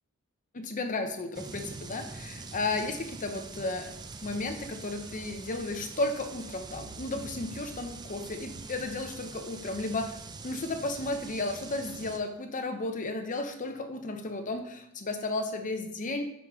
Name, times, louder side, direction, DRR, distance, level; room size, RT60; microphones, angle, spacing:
voice 1, 0.5-3.9 4.2-10.2 10.4-16.2, left 2 dB, 35° left, 6 dB, 0.6 m, -33 dB
sound 1, 1.3-12.2, right 3 dB, 20° right, 0.3 m, -44 dB
7.0 x 4.9 x 3.0 m, 0.78 s
head